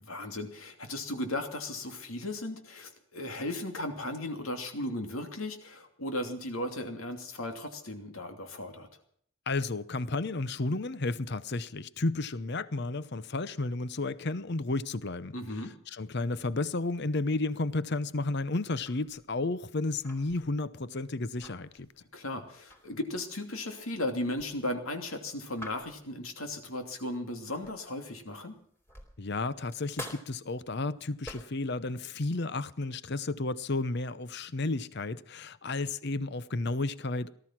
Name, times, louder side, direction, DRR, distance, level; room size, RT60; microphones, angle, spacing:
voice 1, 0.1-9.0 15.3-15.7 22.1-28.6, left 1 dB, 80° left, 2.8 m, -36 dB
voice 2, 9.5-15.3 15.9-21.9 29.2-37.4, left 2 dB, 50° left, 0.8 m, -32 dB
sound 1, 18.7-28.0 28.4-31.7, left 1 dB, 10° left, 4.0 m, -49 dB
18.5 x 13.0 x 6.0 m
head